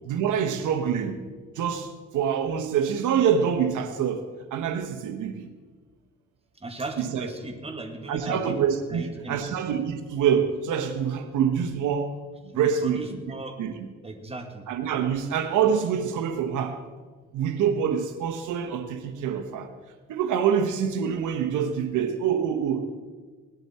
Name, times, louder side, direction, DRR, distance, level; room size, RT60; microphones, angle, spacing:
voice 1, 0.1-1.3 1.6-5.5 7.0-7.3 8.1-12.1 12.4-13.2 13.6-13.7 14.7-16.8 17.3-19.7 20.1-23.0, right 7 dB, 80° right, 1.2 m, -26 dB
voice 2, 6.6-8.6 8.9-9.6 12.8-13.6 14.0-14.7, right 2 dB, 20° right, 2.0 m, -37 dB
18.5 x 12.0 x 4.3 m
cardioid pair, 90°, 30 cm